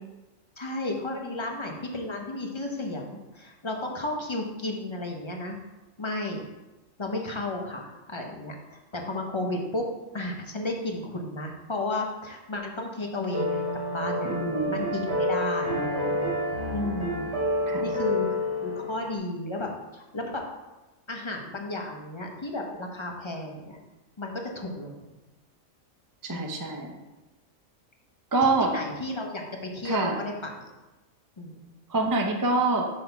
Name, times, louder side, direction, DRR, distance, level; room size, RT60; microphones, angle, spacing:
voice 1, 0.6-5.6 6.0-6.5 7.0-9.8 10.1-13.6 13.9-16.3 16.7-17.3 17.8-20.4 21.1-23.8 24.2-25.0 26.3-26.8 28.6-30.7 31.4-31.7, left 2 dB, 25° left, 1 dB, 0.7 m, -33 dB
sound 1, 13.3-19.2, left 1 dB, 55° right, 2.2 m, -28 dB
voice 2, 14.3-14.8 17.7-17.9 26.2-26.9 28.3-28.7 29.8-30.1 31.9-32.9, right 3 dB, 25° right, 2 dB, 0.4 m, -25 dB
6.1 x 3.8 x 5.7 m, 1.1 s
omnidirectional pair, 1.4 m